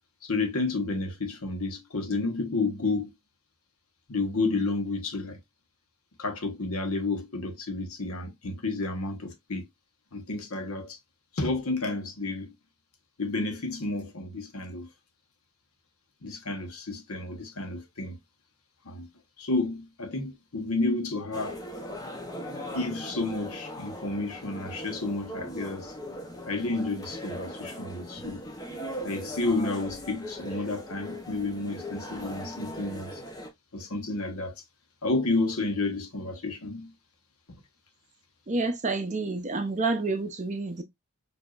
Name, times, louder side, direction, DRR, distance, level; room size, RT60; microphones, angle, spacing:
voice 1, 0.2-3.1 4.1-5.4 6.2-9.7 10.1-11.0 11.3-12.5 13.2-14.9 16.2-18.2 18.8-19.1 19.4-21.6 22.7-25.9 26.5-28.4 29.0-33.2 33.7-34.5 35.0-36.9, left 3 dB, 70° left, 1.0 m, -31 dB
sound 1, 21.3-33.5, equal, 15° left, 0.7 m, -39 dB
voice 2, 38.5-40.8, right 3 dB, 30° right, 0.6 m, -29 dB
4.9 x 2.6 x 2.4 m
head